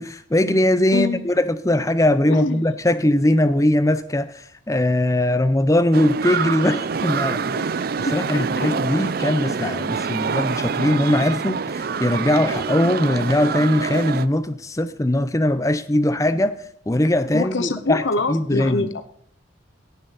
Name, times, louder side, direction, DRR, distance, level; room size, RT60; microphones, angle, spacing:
voice 1, 0.0-7.5 8.0-16.6 16.9-18.0 18.3-18.9, left 1 dB, 15° left, 0.6 m, -20 dB
voice 2, 2.2-2.6 7.6-7.7 8.1-8.7 17.3-19.0, left 2 dB, 70° left, 0.8 m, -25 dB
sound 1, 5.9-14.3, right 5 dB, 50° right, 0.4 m, -26 dB
17.5 x 6.9 x 4.1 m
head